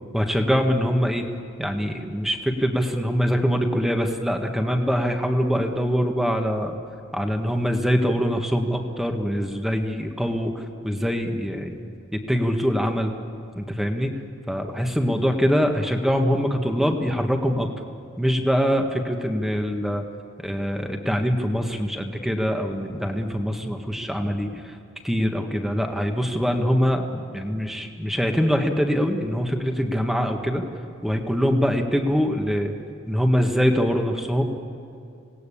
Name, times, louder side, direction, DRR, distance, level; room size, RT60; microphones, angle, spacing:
voice 1, 0.1-1.2 1.6-6.8 7.1-11.7 12.1-13.1 13.5-14.1 14.5-17.7 18.2-20.0 20.4-24.8 25.0-30.6 31.0-32.7 33.1-34.4, equal, ahead, 4 dB, 1.6 m, -23 dB
26.5 x 19.0 x 8.6 m, 2.6 s
head